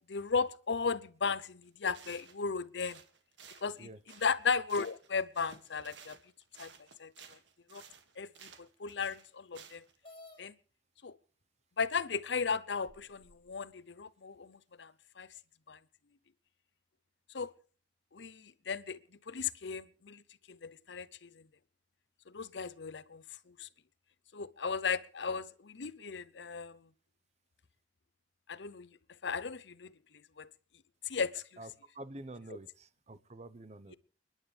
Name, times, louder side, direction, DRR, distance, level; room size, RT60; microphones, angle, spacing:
voice 1, 0.1-3.0 3.6-3.9 4.2-6.2 6.6-6.7 7.0-7.1 7.7-7.8 8.2-8.3 8.6-9.8 10.4-10.5 11.0-11.1 11.8-14.9 15.2-15.3 15.7-15.8 17.3-17.5 18.1-19.0 19.3-20.2 20.5-21.3 22.3-23.2 23.6-23.7 24.3-26.8 28.5-28.9 29.2-29.9 30.4-30.5 31.1-31.4, left 5 dB, 70° left, 0.7 m, -35 dB
sound 1, 1.6-1.7 1.9-2.5 2.8-5.1 5.3-10.0, right 6 dB, 85° right, 2.0 m, -55 dB
sound 2, 10.0-10.4 11.4-11.5 12.1-12.2 12.9-13.5, left 2 dB, 30° left, 3.8 m, -54 dB
voice 2, 31.9-33.9, right 1 dB, 40° right, 0.9 m, -47 dB
30.0 x 11.0 x 3.3 m
head